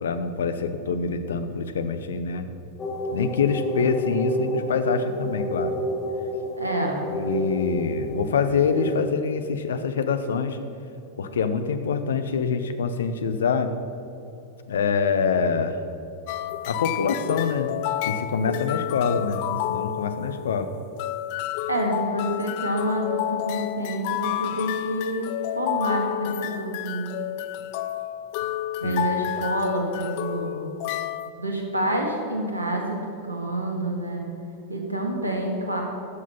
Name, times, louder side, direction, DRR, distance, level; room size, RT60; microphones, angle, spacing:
voice 1, 0.0-2.5 3.1-5.7 7.1-10.6 11.2-13.7 14.7-15.8 16.7-17.7 18.0-20.7 28.8-29.0, left 5 dB, 65° left, 9 dB, 0.8 m, -25 dB
sound 1, 2.8-9.0, right 1 dB, 20° left, 1.5 m, -30 dB
voice 2, 6.6-7.0 21.7-27.1 28.8-30.6 31.4-34.2 34.7-35.8, right 1 dB, 85° right, 1 dB, 1.8 m, -28 dB
sound 2, 16.3-31.3, left 13 dB, 45° left, 0.4 m, -30 dB
12.5 x 7.5 x 5.6 m, 2.8 s
figure-of-eight pair, 90°, 0 cm